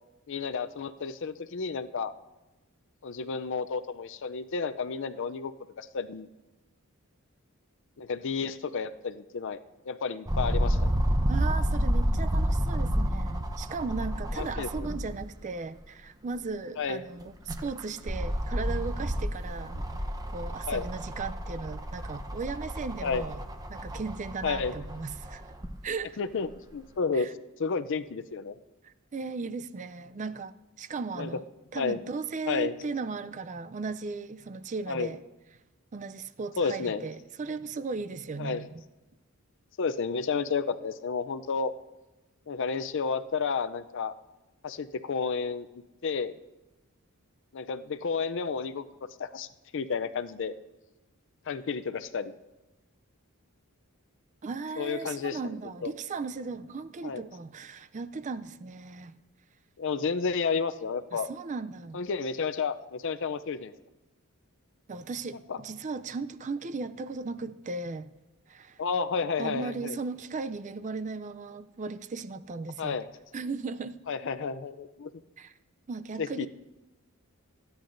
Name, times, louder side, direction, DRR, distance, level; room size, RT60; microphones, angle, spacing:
voice 1, 0.3-2.1 3.0-5.5 5.8-6.3 8.0-9.6 9.8-10.9 14.3-14.9 16.8-17.0 20.7-20.9 23.0-23.2 24.4-24.8 26.2-27.3 27.6-28.6 31.2-31.3 31.8-32.0 32.5-32.7 34.9-35.1 36.6-37.1 38.4-38.7 39.8-41.7 42.5-44.1 44.6-45.7 46.0-46.4 47.5-48.8 49.2-49.5 49.7-50.5 51.5-52.3 54.8-55.4 55.8-55.9 57.0-57.2 59.8-61.3 61.9-63.7 65.5-65.6 68.8-70.0 72.8-73.1 74.1-75.1 76.2-76.5, left 5 dB, 60° left, 0.5 m, -31 dB
sound 1, 10.3-15.3 15.8-15.9 17.2-25.7 26.5-26.6, equal, 15° right, 0.8 m, -30 dB
voice 2, 11.3-19.8 20.3-23.4 23.7-25.5 25.8-26.2 27.1-27.3 28.8-31.4 31.7-35.2 35.9-38.8 54.4-59.1 61.1-62.0 64.9-68.1 68.5-68.8 69.4-73.0 73.3-74.0 75.4-75.5 75.9-76.5, right 4 dB, 35° right, 0.4 m, -36 dB
26.0 x 10.0 x 2.6 m
head